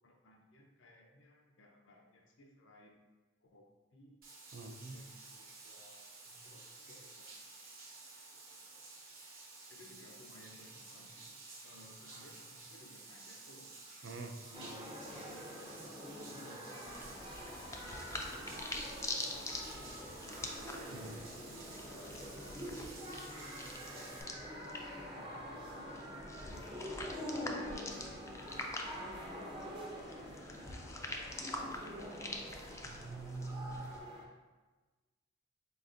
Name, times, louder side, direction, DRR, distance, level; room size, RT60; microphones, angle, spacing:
voice 1, 0.0-2.9 3.5-4.2 4.9-7.6 7.9-8.7 9.7-11.3 11.6-15.9 16.3-20.5 20.9-24.8 25.1-29.2 29.5-30.3 30.8-31.7, left 1 dB, 70° left, 1 dB, 0.5 m, -61 dB
Bathtub (filling or washing), 4.2-24.2, right 3 dB, 50° right, 1.0 m, -53 dB
voice 2, 4.5-5.0 14.0-14.3 20.9-21.2 32.8-33.9, right 3 dB, 65° right, 5 dB, 0.4 m, -44 dB
sound 1, 14.5-34.2, equal, 25° right, 0.6 m, -46 dB
sound 2, 16.9-34.0, left 2 dB, 15° left, 0.3 m, -46 dB
4.2 x 3.9 x 2.4 m, 1.3 s
head